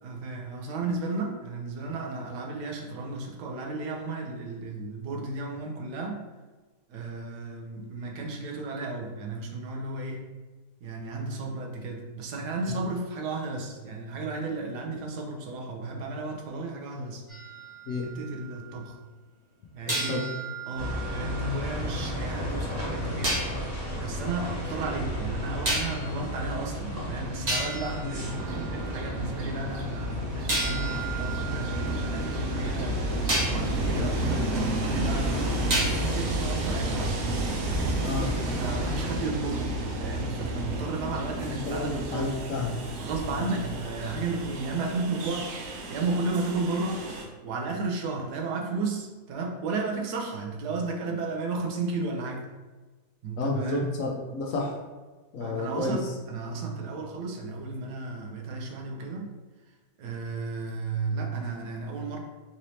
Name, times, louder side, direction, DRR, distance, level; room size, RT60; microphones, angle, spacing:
voice 1, 0.0-6.3 6.9-10.3 10.8-17.2 18.0-19.0 19.7-20.3 20.7-23.4 23.9-34.6 34.9-35.3 35.7-37.2 38.6-42.3 43.0-45.6 45.9-47.1 47.4-52.5 53.2-54.0 55.4-59.4 60.0-62.2, right 3 dB, 90° right, 0 dB, 1.3 m, -33 dB
sound 1, 17.3-18.7 19.9-22.0 23.2-23.6 25.7-26.2 27.0-27.1 27.5-29.1 30.5-32.7 33.3-33.7 35.7-36.3, right 2 dB, 35° right, 0.8 m, -33 dB
voice 2, 19.9-20.2 38.0-38.3 41.5-42.8 53.4-54.7 55.3-56.0, left 2 dB, 65° left, 0 dB, 0.9 m, -30 dB
sound 2, 20.7-39.1, equal, 10° right, 1.1 m, -34 dB
Train, 28.2-47.2, right 2 dB, 65° right, 0.7 m, -32 dB
4.0 x 3.1 x 2.7 m, 1.3 s
omnidirectional pair, 1.7 m